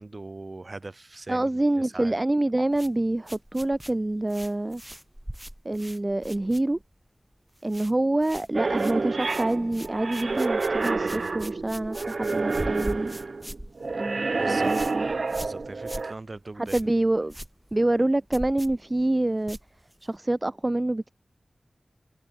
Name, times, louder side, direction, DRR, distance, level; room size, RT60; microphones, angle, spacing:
voice 1, 0.0-1.5 1.7-2.1 14.4-14.7 15.3-16.8, right 2 dB, 45° right, 2.8 m, -40 dB
voice 2, 1.3-4.8 5.6-6.8 7.6-13.1 13.9-15.1 16.6-17.3 17.7-19.6 20.0-21.1, right 1 dB, 30° right, 0.4 m, -26 dB
sound 1, 2.7-7.1 7.3-7.9 8.2-20.2, right 1 dB, 10° right, 4.2 m, -42 dB
sound 2, 8.5-16.1, right 3 dB, 70° right, 1.1 m, -28 dB
wide cardioid pair, 60°, 0 cm